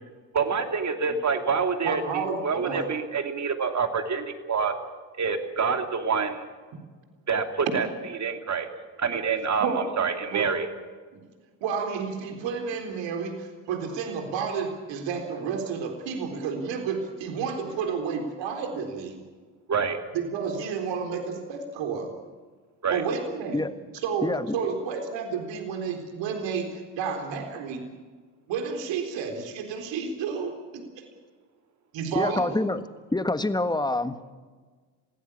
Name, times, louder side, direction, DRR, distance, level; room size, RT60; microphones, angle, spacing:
voice 1, 0.3-4.7 5.2-6.4 7.3-7.9 8.1-8.7 9.0-10.7 19.7-20.0 22.8-23.0, right 5 dB, 35° right, 6 dB, 3.0 m, -27 dB
voice 2, 1.8-2.8 9.6-9.9 10.3-10.5 11.1-11.3 11.6-19.2 20.1-22.1 22.9-23.6 24.0-27.9 28.5-31.1 31.9-32.6, right 6 dB, 65° right, 4 dB, 4.1 m, -31 dB
voice 3, 24.2-24.6 32.1-32.8 33.1-34.2, left 2 dB, 10° left, 11 dB, 1.5 m, -26 dB
23.0 x 16.0 x 8.6 m, 1.4 s
hypercardioid pair, 60°, 47 cm